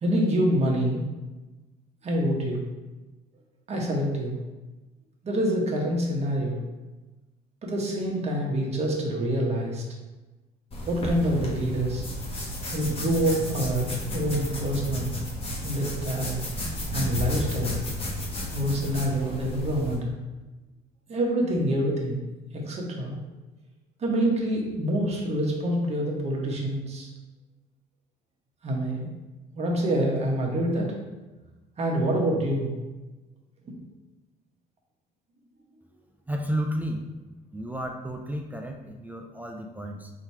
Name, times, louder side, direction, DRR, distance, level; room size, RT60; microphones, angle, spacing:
voice 1, 0.0-1.0 2.0-2.6 3.7-4.4 5.2-6.6 7.6-9.8 10.8-12.0 12.7-15.2 15.6-16.4 16.9-17.7 18.5-20.2 21.1-23.2 24.0-27.1 28.6-29.1 29.5-30.9 31.8-32.7, right 1 dB, 40° right, -1 dB, 1.1 m, -26 dB
sound 1, 10.7-20.0, equal, 35° left, 1.1 m, -33 dB
voice 2, 36.3-37.0 37.5-40.1, equal, 10° right, 3 dB, 0.3 m, -32 dB
3.8 x 2.8 x 4.5 m, 1.1 s
cardioid pair, 110°, 17 cm